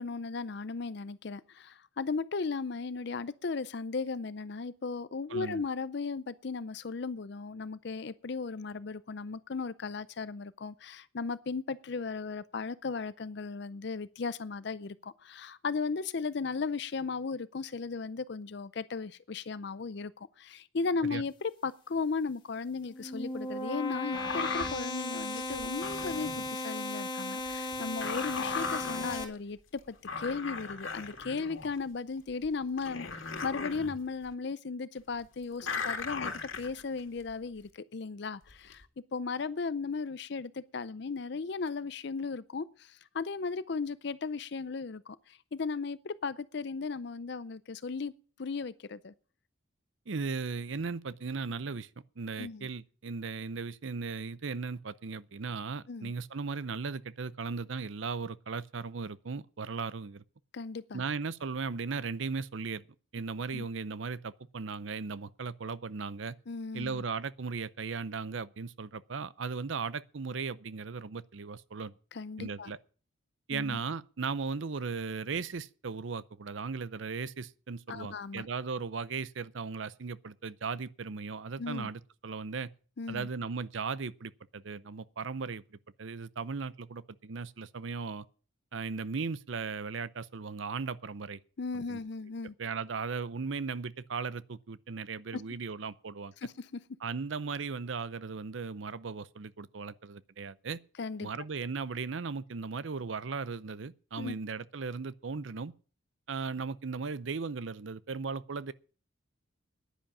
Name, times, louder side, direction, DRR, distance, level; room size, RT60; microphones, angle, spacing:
voice 1, 0.0-38.9 39.1-48.1 48.4-49.1 52.4-52.7 55.9-56.1 60.5-61.0 63.5-63.7 66.5-67.0 72.1-72.7 73.5-73.8 77.9-78.5 81.6-81.9 83.0-83.3 91.6-92.5 95.3-95.4 96.4-96.8 101.0-101.3 104.2-104.4, left 4 dB, 55° left, 0.5 m, -36 dB
voice 2, 5.3-5.6 21.1-21.2 50.1-51.9 52.2-60.2 60.9-62.8 63.1-66.4 66.7-71.9 72.4-72.8 73.5-82.7 83.1-88.3 88.7-91.4 91.7-92.0 92.6-96.3 97.0-100.8 101.2-105.7 106.3-108.7, right 4 dB, 70° right, 0.6 m, -37 dB
sound 1, 22.7-29.2, left 2 dB, 25° left, 2.0 m, -36 dB
sound 2, 24.1-24.8 25.3-26.5 27.5-29.3 29.8-29.9 30.0-31.8 32.4-32.5 32.8-34.0 35.6-37.3 38.5-38.8, left 4 dB, 75° left, 2.1 m, -37 dB
10.5 x 10.0 x 7.2 m
head